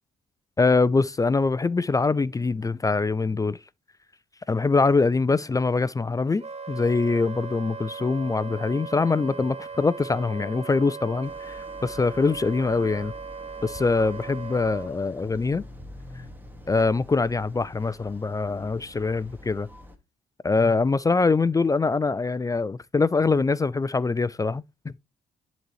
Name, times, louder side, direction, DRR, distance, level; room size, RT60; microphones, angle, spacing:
voice 1, 0.6-3.6 4.5-6.4 6.7-13.1 13.6-15.6 16.7-19.7 20.4-25.0, left 4 dB, 20° left, 0.4 m, -23 dB
Wind instrument woodwind instrument, 6.4-14.9, right 5 dB, 40° right, 1.1 m, -38 dB
sound 1, 11.2-20.0, left 1 dB, 10° right, 1.7 m, -46 dB
10.5 x 4.1 x 3.1 m
supercardioid pair, 60°, 16 cm